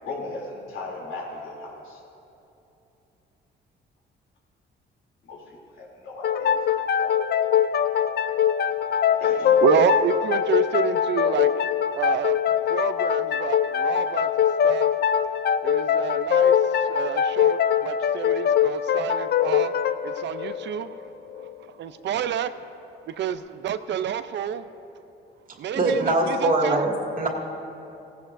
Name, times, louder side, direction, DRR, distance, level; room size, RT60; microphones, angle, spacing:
voice 1, 0.0-2.0 5.2-6.5 7.0-7.1 9.2-9.9, left 3 dB, 80° left, 3.0 m, -36 dB
sound 1, 6.2-21.6, left 8 dB, 55° left, 0.5 m, -22 dB
voice 2, 9.6-11.7 12.0-12.4 12.7-14.9 15.6-19.7 20.0-21.0 21.4-21.5 21.8-22.5 23.1-24.7 25.6-26.8, right 9 dB, 65° right, 0.5 m, -29 dB
voice 3, 25.7-27.3, right 2 dB, 45° right, 2.1 m, -22 dB
16.5 x 16.0 x 2.6 m
cardioid pair, 90°, 20 cm